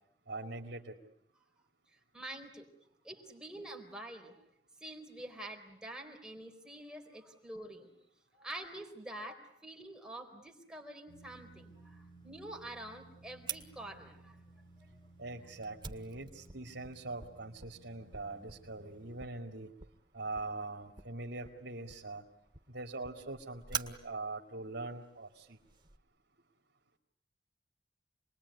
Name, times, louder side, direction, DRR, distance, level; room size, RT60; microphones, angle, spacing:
voice 1, 0.3-1.0 15.2-19.7 20.1-22.2 22.7-25.6, right 2 dB, 70° right, -1 dB, 2.4 m, -42 dB
voice 2, 2.1-2.7 3.0-4.4 4.8-7.9 8.4-14.4, right 1 dB, 5° right, 2 dB, 4.1 m, -47 dB
sound 1, 11.1-19.3, right 2 dB, 25° left, 5.6 m, -59 dB
Fire, 13.5-26.0, right 6 dB, 25° right, 1.8 m, -48 dB
28.0 x 21.5 x 9.8 m, 0.73 s
head